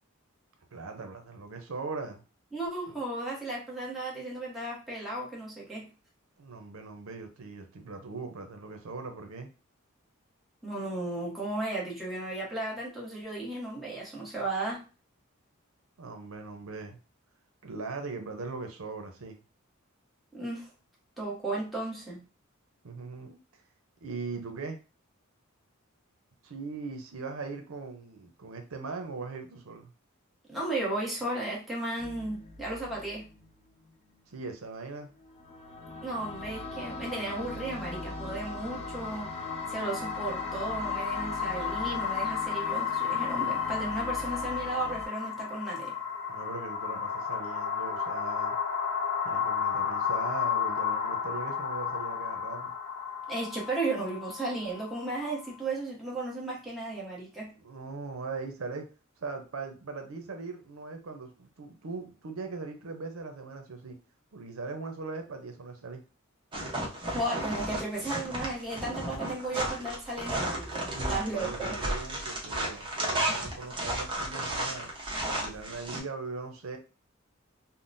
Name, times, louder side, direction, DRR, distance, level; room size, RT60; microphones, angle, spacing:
voice 1, 0.7-2.2 2.9-3.0 6.4-9.5 16.0-17.0 17.6-19.4 22.8-23.4 24.0-24.8 26.4-29.9 34.3-35.1 46.3-48.6 49.2-52.7 57.6-58.9 59.2-64.0 64.3-66.0 70.9-74.9 75.3-76.8, right 4 dB, 90° right, 5 dB, 0.6 m, -40 dB
voice 2, 2.5-5.9 10.6-14.8 20.3-20.7 21.2-22.2 30.5-33.3 36.0-39.3 39.7-45.9 53.3-57.5 67.1-71.8, right 2 dB, ahead, -5 dB, 1.0 m, -34 dB
sound 1, 32.0-34.1 35.1-45.1, left 2 dB, 30° left, 0.4 m, -41 dB
sound 2, 38.4-55.5, left 7 dB, 75° left, 0.9 m, -33 dB
sound 3, 66.5-76.0, right 1 dB, 25° right, 0.8 m, -33 dB
3.7 x 2.1 x 2.5 m, 0.33 s
head